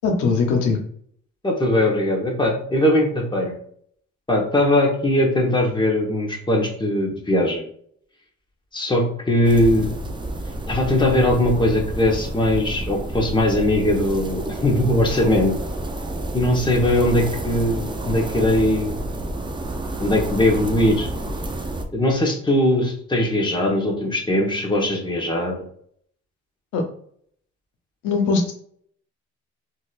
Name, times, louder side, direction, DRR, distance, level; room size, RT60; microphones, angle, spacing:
voice 1, 0.0-0.8 26.7-26.8 28.0-28.5, left 4 dB, 90° left, 3 dB, 0.8 m, -20 dB
voice 2, 1.4-3.5 4.3-7.6 8.7-9.9 10.7-15.5 16.3-19.1 20.0-21.1 21.9-25.5, left 1 dB, 15° left, -1 dB, 1.1 m, -20 dB
sound 1, 9.4-21.9, right 1 dB, 15° right, 0.4 m, -30 dB
4.0 x 2.5 x 2.4 m, 0.63 s
cardioid pair, 90°, 30 cm